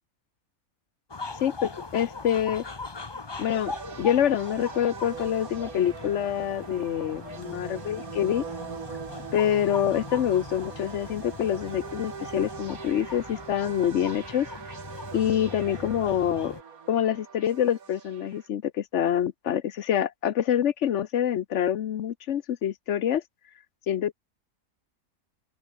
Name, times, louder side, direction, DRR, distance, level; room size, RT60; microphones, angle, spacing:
sound 1, 1.1-16.6, left 3 dB, 20° left, 0.9 m, -40 dB
voice 1, 1.4-2.6 3.4-3.7 4.0-8.4 9.3-14.5 15.1-16.5 16.9-23.2 23.9-24.1, left 10 dB, 60° left, 1.0 m, -26 dB
sound 2, 3.4-18.5, right 6 dB, 75° right, 2.1 m, -42 dB
open air
omnidirectional pair, 1.5 m